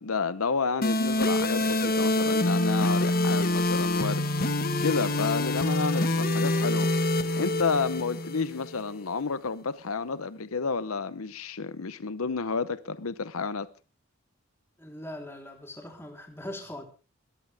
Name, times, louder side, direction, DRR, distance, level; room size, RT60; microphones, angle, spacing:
voice 1, 0.0-4.2 4.8-6.9 7.4-13.7, left 4 dB, 85° left, 0.9 m, -30 dB
sound 1, 0.8-8.8, left 1 dB, 45° left, 1.4 m, -26 dB
voice 2, 14.8-16.8, left 1 dB, 10° left, 3.7 m, -41 dB
21.0 x 13.5 x 3.5 m
head